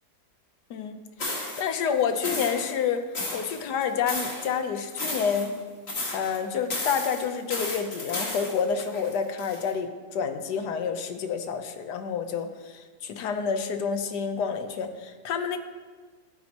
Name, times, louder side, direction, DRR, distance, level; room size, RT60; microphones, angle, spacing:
voice 1, 0.7-5.6 6.1-15.6, left 6 dB, 80° left, 8 dB, 1.4 m, -29 dB
sound 1, 1.2-1.6 2.2-2.7 3.1-4.5 4.9-5.6 5.9-6.4 6.7-9.7, left 2 dB, 40° left, 1.7 m, -33 dB
13.5 x 8.8 x 2.9 m, 1.4 s
omnidirectional pair, 1.8 m